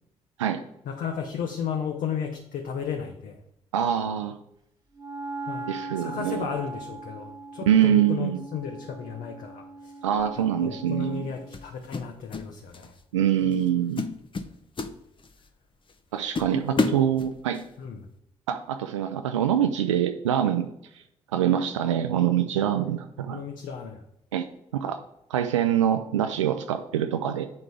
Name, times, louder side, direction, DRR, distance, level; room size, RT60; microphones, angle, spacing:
voice 1, 0.9-3.4 5.5-5.7 6.0-9.9 10.6-12.9 16.7-17.1 17.8-18.1 23.3-24.0, left 7 dB, 60° left, 2 dB, 1.0 m, -34 dB
voice 2, 3.7-4.4 5.7-6.4 7.7-8.4 10.0-11.3 13.1-14.0 16.1-17.6 18.5-20.7 21.3-23.4 24.3-24.5 24.8-25.0 25.3-27.5, right 10 dB, 90° right, 7 dB, 0.4 m, -24 dB
Wind instrument woodwind instrument, 4.9-11.6, right 2 dB, 25° right, 1.8 m, -40 dB
sound 1, 10.2-10.4 11.5-12.5 12.7-13.0 13.5-13.7 14.0-15.5 15.9-16.0 16.3-17.7, left 3 dB, 35° left, 0.9 m, -30 dB
9.6 x 3.9 x 4.8 m, 0.78 s
hypercardioid pair, 45°, 15 cm